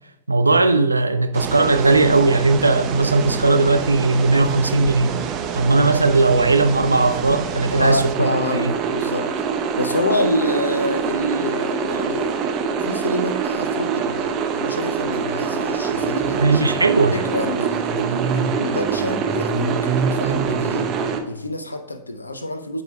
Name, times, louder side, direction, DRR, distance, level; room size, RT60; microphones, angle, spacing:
voice 1, 0.3-5.2 5.5-8.3 16.4-17.2, right 3 dB, 80° right, 0.3 m, -17 dB
sound 1, 1.3-21.2, right 6 dB, 35° right, 0.8 m, -25 dB
voice 2, 7.7-9.3 9.8-16.6 17.1-21.0 21.3-22.8, left 1 dB, 80° left, 0.6 m, -27 dB
13.0 x 4.9 x 2.3 m
figure-of-eight pair, 90°, 0 cm